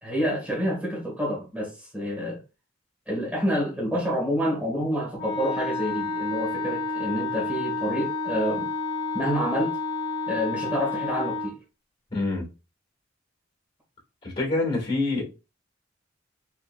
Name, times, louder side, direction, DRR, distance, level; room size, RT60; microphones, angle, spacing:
voice 1, 0.0-2.4 3.1-8.7 9.1-9.8 10.3-11.6, equal, 5° right, 2.0 m, -28 dB
Wind instrument woodwind instrument, 5.2-11.6, left 3 dB, 50° left, 1.2 m, -30 dB
voice 2, 12.1-12.5 14.2-15.2, left 2 dB, 30° left, 2.2 m, -26 dB
4.3 x 4.3 x 2.4 m
head